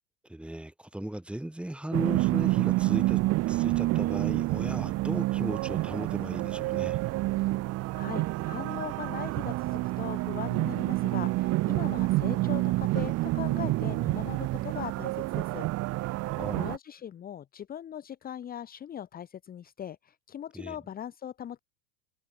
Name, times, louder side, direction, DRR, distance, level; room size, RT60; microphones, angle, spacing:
voice 1, 0.3-3.2 3.5-7.0 16.3-16.7 20.5-20.8, right 1 dB, ahead, 3.4 m, -36 dB
sound 1, 1.9-16.8, right 19 dB, 30° right, 1.3 m, -28 dB
voice 2, 7.9-21.6, left 10 dB, 15° left, 1.7 m, -40 dB
supercardioid pair, 165°, 50 cm